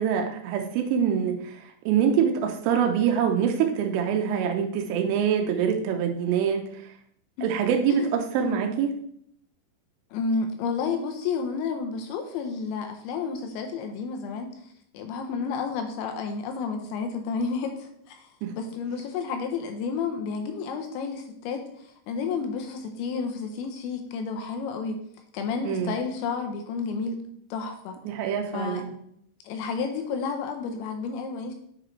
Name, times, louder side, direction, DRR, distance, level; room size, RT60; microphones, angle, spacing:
voice 1, 0.0-6.6 7.4-9.0 18.4-18.5 25.7-25.9 28.1-28.9, right 7 dB, 85° right, 4 dB, 3.3 m, -25 dB
voice 2, 10.1-25.0 25.3-27.2 27.5-28.0 28.5-28.8 29.4-31.5, left 5 dB, 80° left, 5 dB, 2.8 m, -31 dB
9.7 x 5.1 x 3.1 m, 0.67 s
omnidirectional pair, 5.6 m